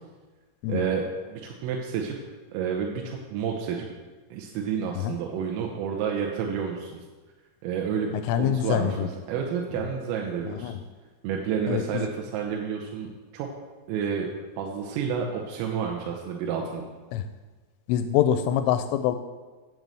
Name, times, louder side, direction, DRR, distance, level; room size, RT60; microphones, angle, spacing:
voice 1, 0.7-1.0 1.3-2.2 2.5-3.9 4.3-7.0 7.6-9.0 9.3-10.7 11.2-12.1 12.3-13.5 13.9-14.3 14.6-16.9, right 7 dB, 85° right, 0 dB, 3.5 m, -30 dB
voice 2, 8.2-9.1 9.8-9.9 10.5-10.8 11.7-12.1 17.1-17.3 17.9-19.2, left 10 dB, 85° left, 10 dB, 2.9 m, -25 dB
9.2 x 6.8 x 7.7 m, 1.3 s
omnidirectional pair, 5.9 m